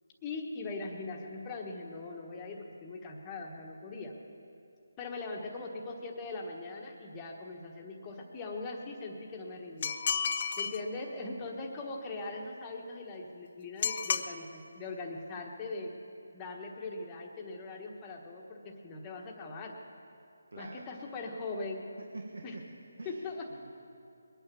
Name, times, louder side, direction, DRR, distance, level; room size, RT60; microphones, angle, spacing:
voice 1, 0.2-4.1 5.0-10.2 10.6-15.9 16.3-19.7 20.6-21.8 22.4-22.6 23.0-23.5, left 3 dB, 15° left, 0 dB, 1.3 m, -41 dB
sound 1, 9.8-10.8 13.8-14.3, left 6 dB, 35° left, 0.5 m, -31 dB
voice 2, 20.5-20.9 22.0-22.7 23.0-23.2 23.5-23.7, right 3 dB, 70° right, 2 dB, 1.4 m, -46 dB
21.5 x 9.0 x 7.0 m, 2.7 s
figure-of-eight pair, 165°, 0 cm